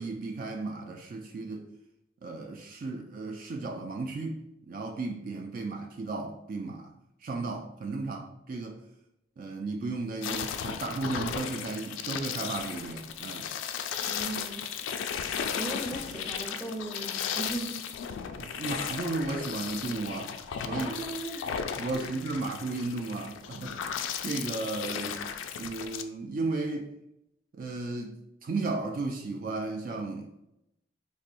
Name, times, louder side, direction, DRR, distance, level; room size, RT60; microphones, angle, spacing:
voice 1, 0.0-1.7 2.2-6.9 7.2-8.8 9.4-13.5 18.4-20.3 20.7-21.0 21.8-23.8 24.2-25.2 25.5-26.9 27.5-28.1 28.4-30.3, right 3 dB, 45° right, 2 dB, 0.3 m, -34 dB
sound 1, 10.2-26.0, left 7 dB, 80° left, 0.3 m, -35 dB
voice 2, 14.1-14.6 15.5-17.8 20.7-21.5 21.9-22.2, right 2 dB, 5° right, -2 dB, 0.6 m, -38 dB
4.2 x 2.6 x 2.5 m, 0.84 s
head